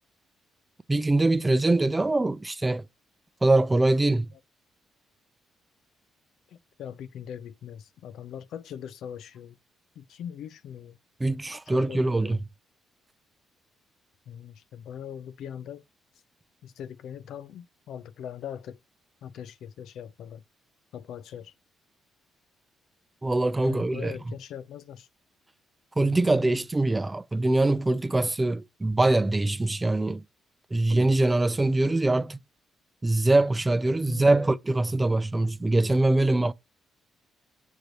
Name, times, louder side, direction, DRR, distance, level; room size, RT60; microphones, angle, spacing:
voice 1, 0.9-2.8 3.4-4.3 11.2-12.4 23.2-24.1 26.0-30.2 30.7-32.4 33.0-36.5, right 2 dB, 15° right, 0.4 m, -23 dB
voice 2, 6.5-9.6 10.0-11.0 11.7-12.4 14.3-15.8 16.6-18.8 19.2-20.4 20.9-21.5 23.6-25.1 26.0-26.6 34.1-34.4, left 9 dB, 75° left, 0.5 m, -41 dB
6.6 x 6.4 x 2.9 m
cardioid pair, 90°, 0 cm